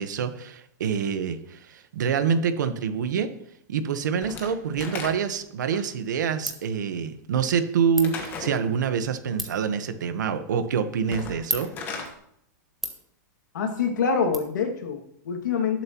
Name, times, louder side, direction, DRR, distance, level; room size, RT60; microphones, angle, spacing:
voice 1, 0.0-3.3 3.7-11.7, right 7 dB, 75° right, 9 dB, 1.3 m, -26 dB
Slam / Wood, 4.2-5.5 8.0-8.6 11.0-12.1, left 4 dB, 20° left, 1.4 m, -36 dB
Ratchet pawl, 5.3-14.4, right 1 dB, ahead, 0.9 m, -40 dB
voice 2, 13.5-15.8, left 5 dB, 85° left, 4 dB, 2.3 m, -26 dB
18.0 x 7.6 x 3.1 m, 0.70 s
supercardioid pair, 170°, 10 cm